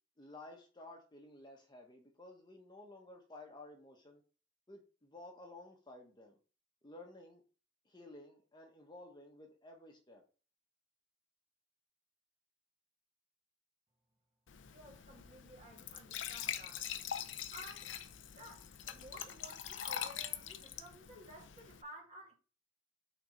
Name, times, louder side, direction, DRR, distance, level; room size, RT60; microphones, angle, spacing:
voice 1, 0.2-4.2 4.7-6.4 6.8-7.4 7.9-10.2, left 2 dB, 25° left, 1.1 m, -54 dB
Glass / Trickle dribble / Fill (with liquid), 14.5-21.8, left 9 dB, 75° left, 0.6 m, -44 dB
voice 2, 14.7-16.9 17.5-17.9 18.4-22.3, right 1 dB, 35° right, 2.2 m, -54 dB
6.0 x 4.3 x 5.2 m
head